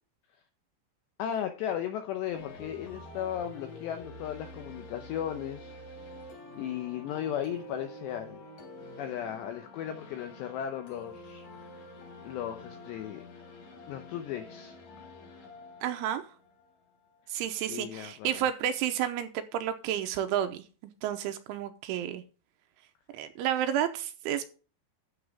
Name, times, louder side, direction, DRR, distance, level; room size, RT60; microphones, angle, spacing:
voice 1, 1.2-5.7 6.6-8.4 9.0-11.8 12.3-13.2 13.9-14.8 17.7-18.5, left 10 dB, 85° left, 7 dB, 2.5 m, -36 dB
sound 1, 2.3-17.2, left 2 dB, 45° left, 3.8 m, -48 dB
voice 2, 15.8-16.2 17.3-22.2 23.1-24.4, right 10 dB, 80° right, 8 dB, 3.0 m, -31 dB
13.0 x 6.9 x 3.5 m, 0.36 s
omnidirectional pair, 6.0 m